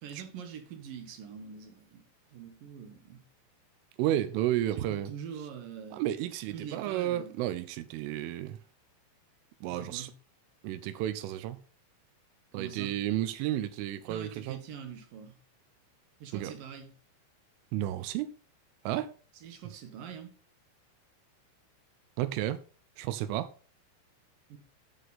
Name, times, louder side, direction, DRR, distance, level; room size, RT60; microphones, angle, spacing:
voice 1, 0.0-3.2 4.7-6.0 6.5-7.4 9.7-10.1 12.5-13.0 14.0-15.4 16.2-16.9 19.3-20.3 24.5-24.6, right 7 dB, 60° right, 2.6 m, -44 dB
voice 2, 4.0-5.1 5.9-8.6 9.6-10.1 10.6-11.6 12.5-14.6 16.3-16.5 17.7-18.3 18.9-19.1 22.2-22.6 23.0-23.5, right 13 dB, 90° right, 3.4 m, -32 dB
9.8 x 8.0 x 4.2 m
omnidirectional pair, 5.5 m